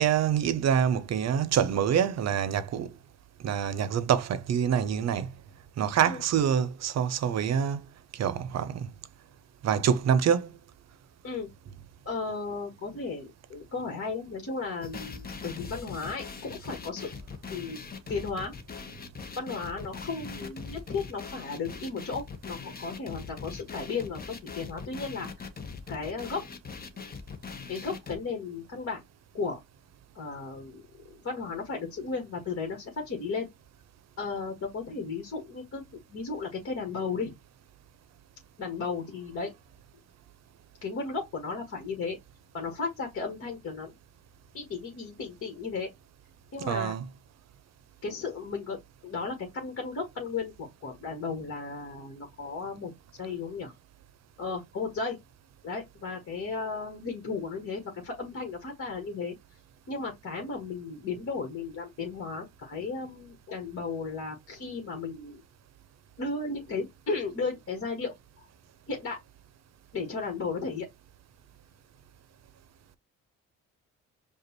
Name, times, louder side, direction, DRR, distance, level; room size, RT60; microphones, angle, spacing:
voice 1, 0.0-2.9 3.4-5.3 5.8-7.8 8.1-8.9 9.6-10.6 46.7-47.1, right 8 dB, 60° right, 0.7 m, -26 dB
voice 2, 12.0-17.1 17.5-18.5 19.4-25.5 25.9-26.5 27.7-29.0 29.3-29.6 30.1-30.8 31.2-33.5 34.2-35.8 36.1-37.3 38.6-39.5 40.8-42.2 42.5-43.9 44.5-45.9 46.5-47.0 48.0-48.8 49.0-52.9 53.2-53.7 54.4-55.2 55.6-59.3 59.9-65.4 66.2-68.4 68.9-69.2 69.9-70.9, left 4 dB, 50° left, 1.7 m, -35 dB
sound 1, 14.8-28.2, left 5 dB, 30° left, 1.0 m, -41 dB
5.1 x 2.5 x 3.0 m
cardioid pair, 90°, 30 cm